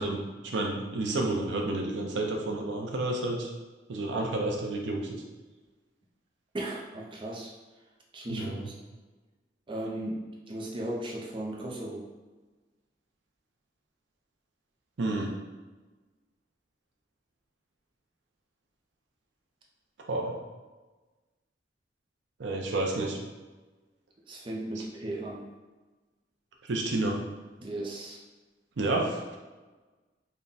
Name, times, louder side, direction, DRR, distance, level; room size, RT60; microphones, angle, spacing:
voice 1, 0.0-3.5 3.9-5.0 8.3-8.7 15.0-15.3 20.1-20.3 22.4-23.2 26.7-27.2 28.8-29.4, right 2 dB, 85° right, 1 dB, 0.6 m, -30 dB
voice 2, 6.5-7.5 8.1-8.7 9.7-12.1 24.3-25.5 27.6-28.2, right 1 dB, 30° right, -2 dB, 0.5 m, -36 dB
3.6 x 2.2 x 3.9 m, 1.2 s
head